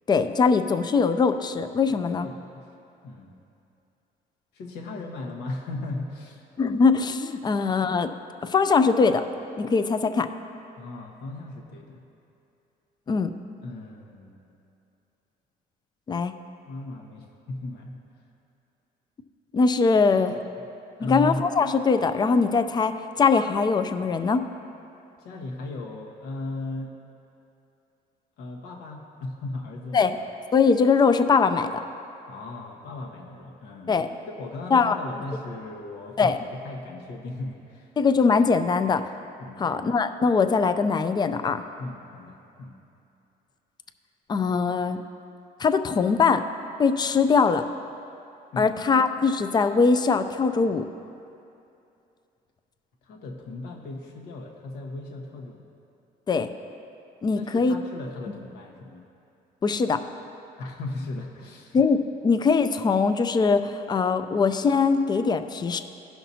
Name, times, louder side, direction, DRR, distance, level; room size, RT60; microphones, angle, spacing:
voice 1, 0.1-2.3 6.6-8.1 8.4-9.3 9.6-10.3 13.1-13.3 16.1-16.3 19.5-20.3 21.0-24.4 29.9-30.2 30.5-31.7 33.9-34.1 34.7-35.0 36.2-36.4 38.0-39.0 39.6-41.6 44.3-45.0 45.6-46.4 46.8-47.6 48.6-50.8 56.3-56.5 57.2-57.7 59.6-60.0 61.7-65.8, left 5 dB, 25° left, 9 dB, 0.4 m, -21 dB
voice 2, 1.9-2.6 3.0-3.4 4.5-6.4 7.4-7.7 10.7-12.0 13.6-14.5 16.7-18.0 20.3-20.6 21.0-21.5 25.2-26.9 28.4-30.2 32.3-34.0 34.4-36.4 36.6-37.9 39.4-39.8 41.8-42.8 48.5-48.8 53.0-55.6 57.3-59.0 60.6-61.8, left 2 dB, 80° left, 0 dB, 1.2 m, -36 dB
16.5 x 5.8 x 2.8 m, 2.7 s
cardioid pair, 110°, 17 cm